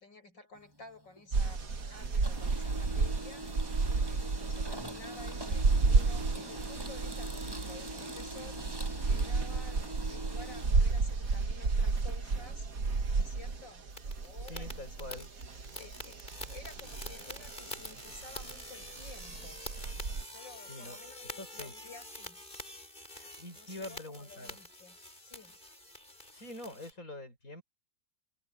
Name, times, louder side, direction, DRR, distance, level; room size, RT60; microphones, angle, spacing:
voice 1, 0.0-8.8 9.1-12.7 13.1-13.9 14.2-15.3 15.7-19.7 20.2-22.4 23.5-25.6, left 3 dB, 75° left, 7.7 m, -53 dB
Printer, 0.5-1.8 2.1-11.7, equal, 10° right, 7.3 m, -44 dB
sound 1, 1.3-20.2, right 4 dB, 50° right, 2.1 m, -32 dB
sound 2, 13.9-26.9, left 1 dB, 25° left, 7.0 m, -47 dB
voice 2, 14.4-15.3 20.7-21.0 21.4-21.7 23.1-24.6 26.3-27.6, left 1 dB, 45° left, 6.7 m, -45 dB
omnidirectional pair, 2.0 m